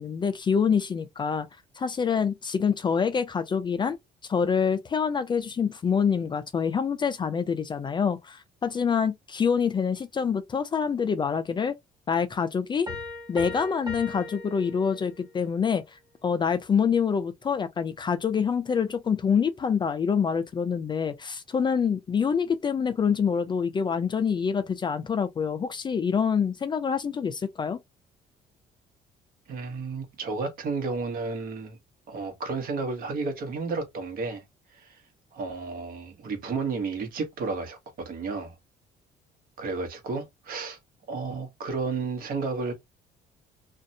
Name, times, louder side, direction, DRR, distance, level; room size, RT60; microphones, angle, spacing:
voice 1, 0.0-1.5 1.8-4.0 4.3-11.8 12.1-12.9 13.3-27.8, left 6 dB, 25° left, 0.4 m, -26 dB
Piano, 12.9-15.4, left 3 dB, 20° right, 1.1 m, -38 dB
voice 2, 29.5-31.8 32.1-34.4 34.7-35.0 35.3-38.6 39.6-40.8 41.1-42.7, right 4 dB, 60° right, 1.0 m, -32 dB
2.5 x 2.1 x 2.6 m
cardioid pair, 110°, 17 cm